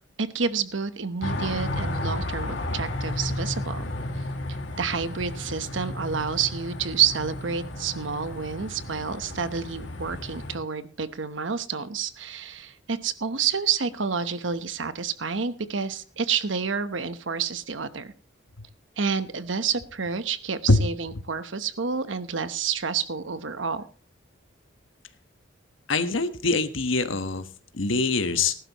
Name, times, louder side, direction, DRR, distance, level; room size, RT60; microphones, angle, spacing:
voice 1, 0.2-3.8 4.8-18.1 19.0-23.8, right 6 dB, 75° right, 12 dB, 1.0 m, -29 dB
sound 1, 1.2-10.6, left 1 dB, 70° left, 2.2 m, -33 dB
voice 2, 25.9-27.4 27.7-28.6, left 3 dB, 85° left, 9 dB, 1.3 m, -23 dB
19.0 x 12.0 x 3.0 m, 0.37 s
head